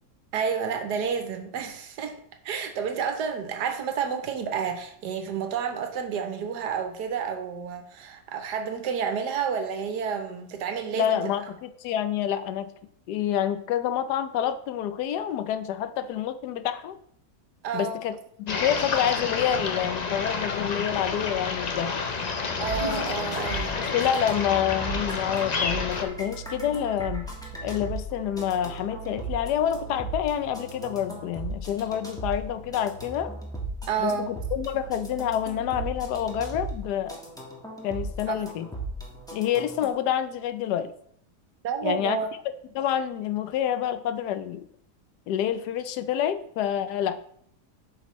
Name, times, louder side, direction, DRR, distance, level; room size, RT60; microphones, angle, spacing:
voice 1, 0.3-2.2 2.4-11.2 17.6-18.0 22.6-23.9 33.9-34.3 38.3-38.5 41.6-42.3, right 6 dB, 85° right, 1.4 m, -30 dB
voice 2, 10.9-12.7 13.1-16.9 17.7-18.1 18.4-22.0 23.8-27.3 27.6-33.3 34.0-37.2 37.8-38.7 39.3-40.9 41.8-42.2 42.7-44.7 45.3-47.2, left 10 dB, 85° left, 1.2 m, -28 dB
sound 1, 18.5-26.1, left 4 dB, 65° left, 0.4 m, -29 dB
sound 2, 22.4-39.9, right 2 dB, 5° left, 1.2 m, -37 dB
8.2 x 5.4 x 3.1 m
omnidirectional pair, 1.7 m